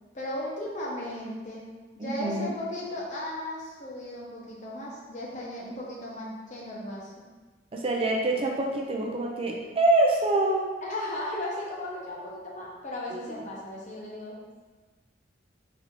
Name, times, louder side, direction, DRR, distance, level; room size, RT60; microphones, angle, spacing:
voice 1, 0.1-1.7 2.0-7.2 10.8-14.4, left 1 dB, 40° left, -4 dB, 1.0 m, -36 dB
voice 2, 2.0-2.5 7.7-10.7, right 2 dB, 30° right, -1 dB, 0.5 m, -25 dB
4.1 x 2.8 x 4.5 m, 1.3 s
head